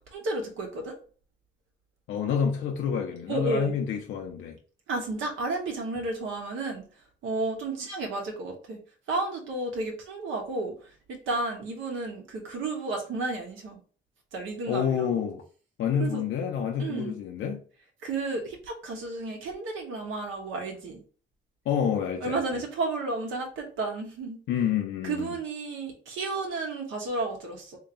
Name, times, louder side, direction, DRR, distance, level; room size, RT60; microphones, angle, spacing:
voice 1, 0.1-1.0 3.3-3.7 4.9-6.8 7.2-8.8 9.1-13.8 14.3-15.1 16.0-16.2 16.8-17.1 18.0-21.0 22.2-24.4 25.0-27.8, right 3 dB, 80° right, 1.3 m, -32 dB
voice 2, 2.1-4.6 14.7-15.4 15.8-17.6 21.7-22.6 24.5-25.3, left 7 dB, 75° left, 0.6 m, -28 dB
3.1 x 2.8 x 3.9 m
cardioid pair, 90°, 20 cm